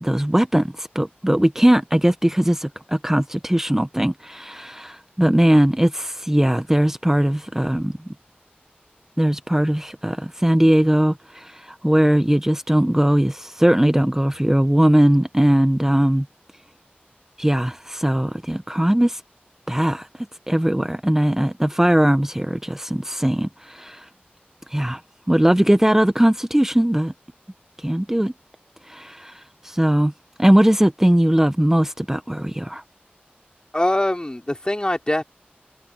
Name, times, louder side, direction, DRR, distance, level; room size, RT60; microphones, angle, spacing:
voice 1, 0.0-8.1 9.2-16.3 17.4-19.2 19.7-20.1 20.5-24.1 24.7-25.0 25.3-27.1 27.8-28.3 28.8-30.1 30.4-32.8, right 1 dB, 10° right, 0.7 m, -19 dB
voice 2, 33.7-35.2, left 1 dB, 25° left, 3.0 m, -22 dB
wide cardioid pair, 55°, 4 cm